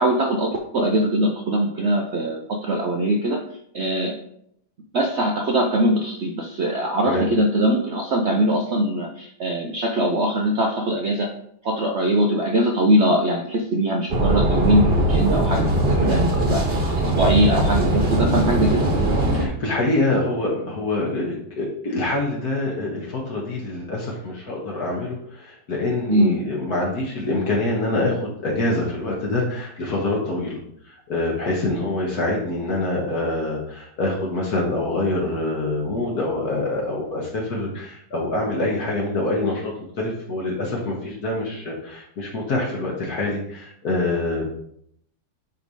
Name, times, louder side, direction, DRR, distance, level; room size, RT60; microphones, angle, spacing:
voice 1, 0.0-3.4 3.7-4.1 4.9-11.3 11.6-16.6 17.0-18.9 26.1-26.4, right 1 dB, 75° right, 1 dB, 0.6 m, -21 dB
sound 1, 14.1-19.4, right 1 dB, 35° right, 1.2 m, -20 dB
voice 2, 19.3-30.6 30.8-44.5, left 2 dB, 55° left, -3 dB, 1.6 m, -25 dB
9.6 x 3.4 x 4.0 m, 0.72 s
omnidirectional pair, 2.1 m